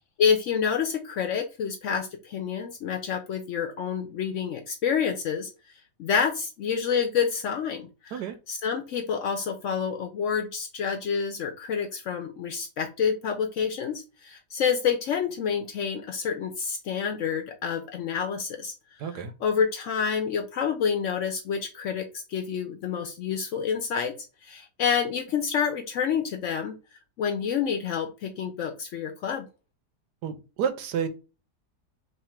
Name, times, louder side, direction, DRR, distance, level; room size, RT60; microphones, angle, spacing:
voice 1, 0.2-5.5 6.0-8.2 8.5-18.7 19.4-24.1 24.4-26.8 27.2-29.4, left 7 dB, 70° left, 5 dB, 0.7 m, -28 dB
voice 2, 19.0-19.3 30.2-31.1, right 7 dB, 85° right, 8 dB, 1.2 m, -30 dB
3.2 x 2.4 x 4.2 m, 0.31 s
omnidirectional pair, 1.7 m